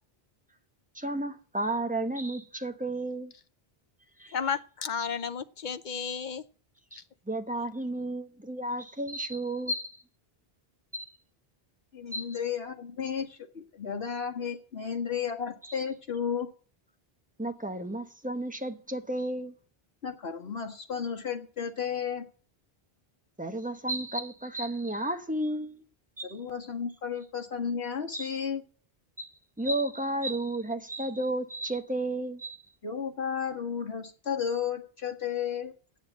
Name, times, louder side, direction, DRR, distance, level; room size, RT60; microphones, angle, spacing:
voice 1, 0.9-3.3 4.2-4.4 6.9-10.0 10.9-11.1 12.1-12.4 17.4-19.5 23.4-25.8 26.2-26.4 28.1-28.3 29.2-32.6, right 1 dB, 10° right, 1.0 m, -33 dB
voice 2, 4.3-6.4 7.0-7.1, left 6 dB, 50° left, 0.8 m, -33 dB
voice 3, 11.9-16.5 20.0-22.3 26.3-28.6 32.8-35.7, left 7 dB, 80° left, 1.9 m, -33 dB
8.8 x 7.2 x 8.2 m
omnidirectional pair, 1.0 m